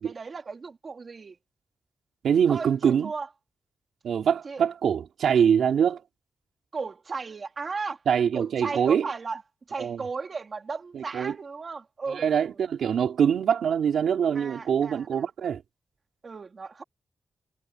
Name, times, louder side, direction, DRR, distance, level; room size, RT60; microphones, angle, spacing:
voice 1, 0.0-1.4 2.5-3.3 4.4-4.6 6.7-8.0 8.3-9.4 9.7-12.6 14.3-15.3 16.2-16.8, right 4 dB, 40° right, 2.7 m, -35 dB
voice 2, 2.2-3.1 4.0-6.0 8.1-9.1 9.8-10.0 10.9-11.3 12.1-15.6, right 8 dB, 85° right, 3.2 m, -24 dB
wide cardioid pair, 125°, 0 cm